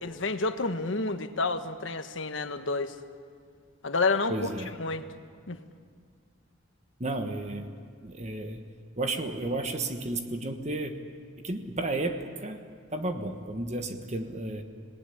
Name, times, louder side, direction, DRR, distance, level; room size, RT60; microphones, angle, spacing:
voice 1, 0.0-3.0 3.8-4.5 4.8-5.0 5.5-5.6, left 3 dB, 75° left, 9 dB, 1.3 m, -29 dB
voice 2, 4.3-4.7 7.0-7.7 8.0-8.6 9.0-11.0 11.4-12.6 12.9-14.6, right 2 dB, 35° right, 6 dB, 1.4 m, -32 dB
27.0 x 18.5 x 10.0 m, 2.1 s
head